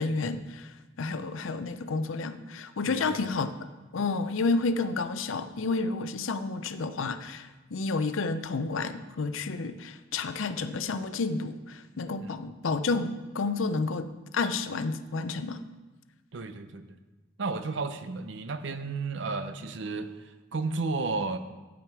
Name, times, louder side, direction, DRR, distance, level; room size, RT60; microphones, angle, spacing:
voice 1, 0.0-14.1 14.3-15.6, left 3 dB, 70° left, 11 dB, 0.5 m, -30 dB
voice 2, 2.9-3.3 12.2-12.3 16.3-17.0 17.4-21.4, right 3 dB, 60° right, 10 dB, 0.6 m, -33 dB
9.2 x 7.4 x 4.7 m, 1.2 s
head